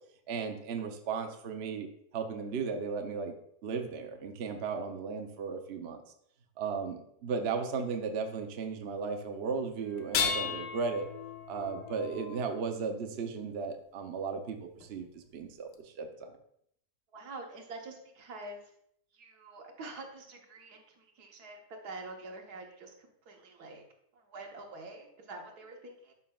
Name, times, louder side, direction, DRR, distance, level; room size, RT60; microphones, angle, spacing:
voice 1, 0.3-3.3 3.6-6.0 6.6-11.1 11.5-16.3, right 5 dB, 55° right, 4 dB, 0.7 m, -35 dB
sound 1, 10.0-13.2 14.8-14.9 15.7-15.8, left 6 dB, 85° left, 1.3 m, -36 dB
voice 2, 17.1-18.7 19.1-23.8 24.1-26.1, right 2 dB, 70° right, 2 dB, 1.6 m, -46 dB
11.5 x 5.6 x 2.3 m, 0.72 s
omnidirectional pair, 1.8 m